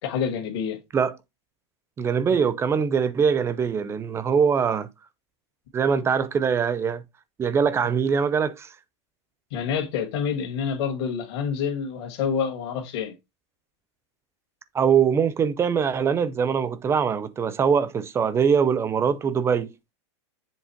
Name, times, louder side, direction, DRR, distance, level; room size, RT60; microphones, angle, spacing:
voice 1, 0.0-0.8 9.5-13.1, left 7 dB, 60° left, 2.0 m, -27 dB
voice 2, 2.0-4.9 5.7-7.0 7.4-8.7 14.7-19.7, right 6 dB, 15° right, 0.5 m, -22 dB
7.5 x 3.1 x 4.3 m
supercardioid pair, 140°, 15 cm